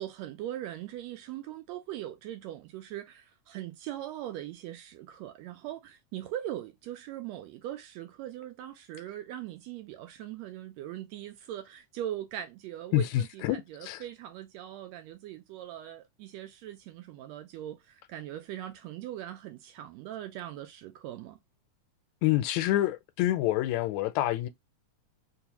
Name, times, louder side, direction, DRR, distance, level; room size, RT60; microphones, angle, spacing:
voice 1, 0.0-21.4, right 12 dB, 80° right, 1.6 m, -40 dB
voice 2, 12.9-14.0 22.2-24.5, left 14 dB, 80° left, 1.8 m, -27 dB
4.6 x 2.1 x 2.8 m
omnidirectional pair, 3.4 m